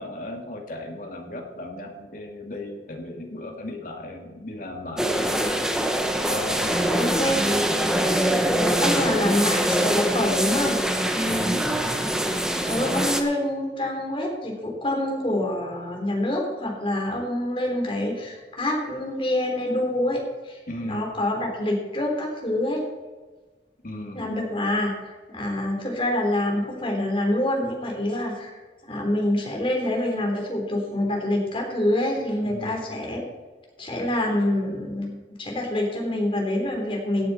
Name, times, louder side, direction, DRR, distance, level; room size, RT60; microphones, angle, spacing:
voice 1, 0.0-5.4 6.3-7.7 11.2-11.8 20.7-21.1 23.8-24.3 32.4-32.8, left 1 dB, 50° left, 2 dB, 2.2 m, -35 dB
sound 1, 5.0-13.2, right 1 dB, 5° right, 1.0 m, -23 dB
voice 2, 6.9-7.4 8.8-10.8 12.7-22.8 24.1-33.3 33.8-37.3, left 1 dB, 30° left, 0 dB, 3.5 m, -26 dB
16.5 x 9.5 x 4.2 m, 1.3 s
head